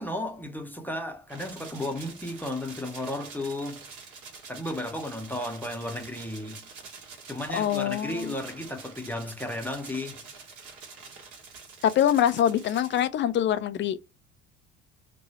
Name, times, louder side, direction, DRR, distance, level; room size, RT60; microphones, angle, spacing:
voice 1, 0.0-3.9 4.5-6.7 7.3-10.2, left 1 dB, 5° left, 0.8 m, -34 dB
sound 1, 1.3-13.0, right 5 dB, 55° right, 1.4 m, -46 dB
voice 2, 7.5-8.3 11.8-14.0, left 10 dB, 35° left, 0.4 m, -24 dB
3.1 x 2.2 x 4.2 m
figure-of-eight pair, 55°, 36 cm